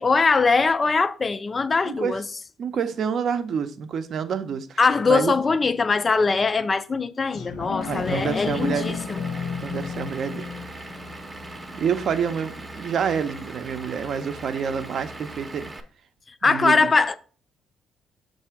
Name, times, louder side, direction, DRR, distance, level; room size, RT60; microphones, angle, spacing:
voice 1, 0.0-2.2 4.8-9.2 16.4-17.2, left 4 dB, 25° left, 0.4 m, -21 dB
voice 2, 1.8-2.2 2.6-4.8 5.1-5.3 7.9-9.0 9.6-10.8 11.7-15.7 16.4-16.9, right 7 dB, 50° right, 0.6 m, -28 dB
sound 1, 7.3-12.4 12.8-12.9, left 5 dB, 75° left, 1.1 m, -33 dB
Vehicle / Engine, 7.8-15.8, right 2 dB, 15° right, 0.7 m, -40 dB
6.6 x 2.7 x 5.6 m
cardioid pair, 130°, 0 cm